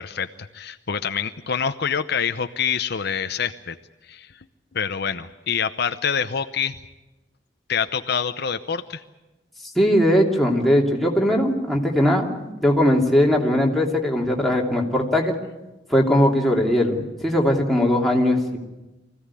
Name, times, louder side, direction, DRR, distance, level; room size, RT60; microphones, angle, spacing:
voice 1, 0.0-3.8 4.0-4.4 4.7-6.8 7.7-9.0, left 7 dB, 60° left, 9 dB, 0.8 m, -26 dB
voice 2, 9.7-15.3 15.9-18.6, left 1 dB, ahead, -2 dB, 3.0 m, -19 dB
24.5 x 16.0 x 9.9 m, 1.1 s
head